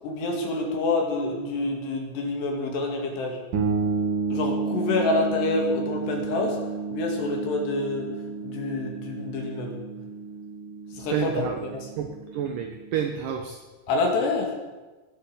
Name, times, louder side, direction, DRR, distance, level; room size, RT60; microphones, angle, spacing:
voice 1, 0.0-3.4 4.3-6.6 6.9-8.1 8.4-9.8 10.9-11.9 13.9-14.5, left 3 dB, 75° left, 1 dB, 4.5 m, -27 dB
sound 1, 3.5-13.1, right 4 dB, 55° right, 3.1 m, -31 dB
voice 2, 11.1-11.6 12.0-13.6, right 8 dB, 70° right, 5 dB, 2.1 m, -29 dB
21.5 x 8.2 x 7.3 m, 1.2 s
omnidirectional pair, 5.0 m